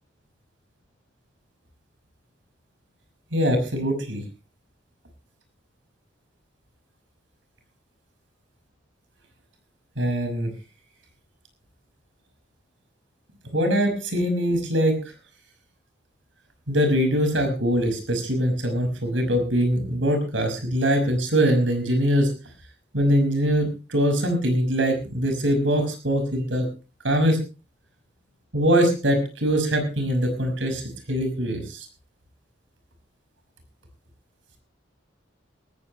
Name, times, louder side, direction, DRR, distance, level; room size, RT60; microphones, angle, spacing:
voice 1, 3.3-4.2 10.0-10.5 13.5-15.0 16.7-22.3 22.9-26.6 27.0-27.4 28.5-31.9, equal, 80° right, 6 dB, 5.8 m, -22 dB
18.5 x 15.0 x 3.2 m, 0.33 s
head